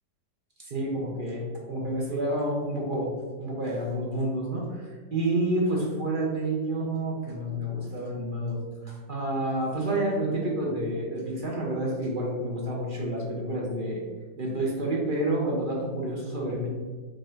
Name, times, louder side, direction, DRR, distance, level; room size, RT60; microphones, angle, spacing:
voice 1, 0.6-3.1 3.4-14.0 14.4-16.7, right 1 dB, 55° right, -3 dB, 0.6 m, -29 dB
4.6 x 2.5 x 4.4 m, 1.5 s
omnidirectional pair, 2.0 m